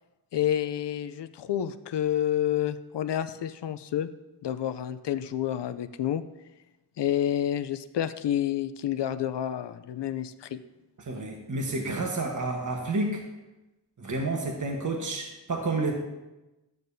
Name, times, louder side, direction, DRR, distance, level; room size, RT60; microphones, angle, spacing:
voice 1, 0.3-4.1 4.4-6.2 7.0-10.6, left 11 dB, 75° left, 12 dB, 0.5 m, -29 dB
voice 2, 11.0-13.2 14.0-15.9, right 2 dB, 45° right, 1 dB, 1.2 m, -30 dB
12.0 x 9.1 x 2.7 m, 1.0 s
wide cardioid pair, 95°, 42 cm